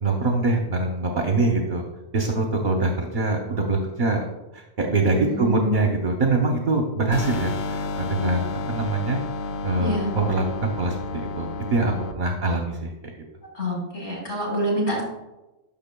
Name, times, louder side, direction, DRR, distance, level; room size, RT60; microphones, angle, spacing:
voice 1, 0.0-1.8 2.1-4.2 4.5-9.2 9.6-12.9, right 3 dB, 50° right, 2 dB, 0.8 m, -24 dB
voice 2, 5.2-5.8 9.8-10.1 13.5-15.0, equal, 45° left, -4 dB, 2.6 m, -26 dB
sound 1, 7.1-12.1, left 3 dB, 70° left, 0.8 m, -31 dB
12.0 x 5.4 x 2.2 m, 1.0 s
omnidirectional pair, 1.2 m